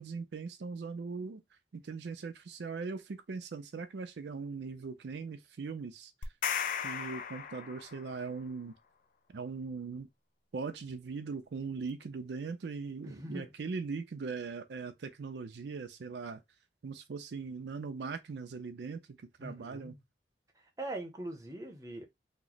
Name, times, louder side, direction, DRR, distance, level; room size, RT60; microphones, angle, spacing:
voice 1, 0.0-1.4 1.7-6.1 6.8-8.7 9.3-10.1 10.5-16.4 16.8-19.9, right 4 dB, 70° right, 0.4 m, -40 dB
sound 1, 6.2-8.2, left 7 dB, 50° left, 0.3 m, -36 dB
voice 2, 13.0-13.5 19.4-20.0 20.8-22.0, right 1 dB, 20° right, 0.6 m, -42 dB
3.0 x 2.0 x 3.9 m
head